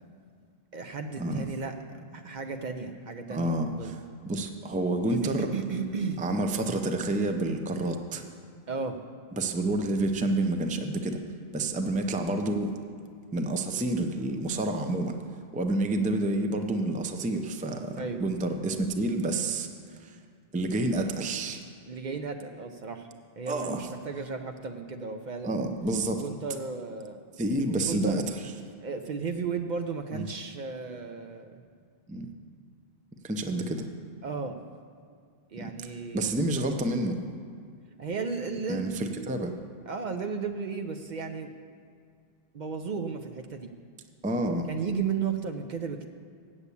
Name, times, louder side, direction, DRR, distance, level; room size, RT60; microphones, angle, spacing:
voice 1, 0.7-4.0 5.1-6.2 8.7-9.0 18.0-18.2 21.9-23.1 23.4-25.6 26.2-27.2 27.7-28.2 28.8-31.6 34.2-34.6 35.5-36.3 38.0-39.3 39.9-41.5 42.5-43.7 44.7-46.1, right 5 dB, 55° right, 6 dB, 0.6 m, -34 dB
voice 2, 3.3-4.0 4.3-5.5 6.2-8.2 9.3-11.2 11.5-12.7 13.3-15.2 15.5-19.7 20.0-20.2 20.5-21.6 23.5-23.8 25.4-26.2 27.4-28.5 30.1-30.3 32.1-32.3 33.2-33.9 35.6-35.7 36.1-37.2 38.7-39.5 44.2-44.7, right 2 dB, 10° right, 5 dB, 0.4 m, -29 dB
8.2 x 7.2 x 8.3 m, 2.2 s
omnidirectional pair, 1.0 m